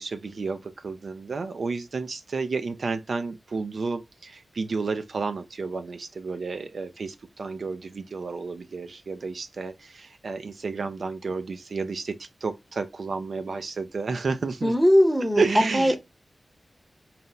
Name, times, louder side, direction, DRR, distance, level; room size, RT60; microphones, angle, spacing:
voice 1, 0.0-14.7 15.4-16.0, right 4 dB, 65° right, 0.4 m, -31 dB
voice 2, 14.6-15.4 15.7-16.0, equal, 5° right, 0.7 m, -19 dB
4.1 x 2.1 x 3.7 m
wide cardioid pair, 120°, 0 cm